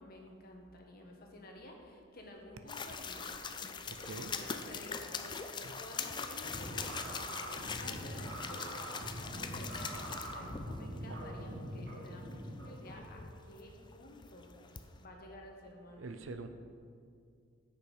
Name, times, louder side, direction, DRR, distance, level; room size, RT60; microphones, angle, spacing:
voice 1, 0.0-8.9 9.4-16.1, left 1 dB, 50° left, 1 dB, 1.3 m, -52 dB
sound 1, 2.7-15.0, left 5 dB, 25° left, 0.4 m, -43 dB
voice 2, 3.9-4.3 5.6-5.7 11.1-11.2 16.0-16.5, right 3 dB, 85° right, 8 dB, 0.6 m, -44 dB
sound 2, 6.4-13.2, right 1 dB, 70° right, 2.4 m, -44 dB
10.0 x 6.0 x 4.9 m, 2.3 s
head